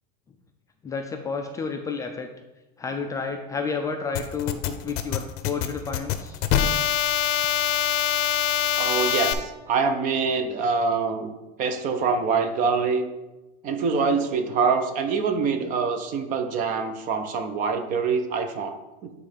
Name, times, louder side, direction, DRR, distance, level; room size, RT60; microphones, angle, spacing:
voice 1, 0.8-2.3 2.8-6.4, left 5 dB, 15° left, 4 dB, 0.3 m, -31 dB
sound 1, 4.1-9.3, left 10 dB, 55° left, 0.6 m, -24 dB
voice 2, 8.8-11.3 11.6-13.1 13.6-19.1, right 5 dB, 40° right, 7 dB, 0.7 m, -25 dB
8.8 x 3.2 x 5.0 m, 1.0 s
cardioid pair, 160°, 21 cm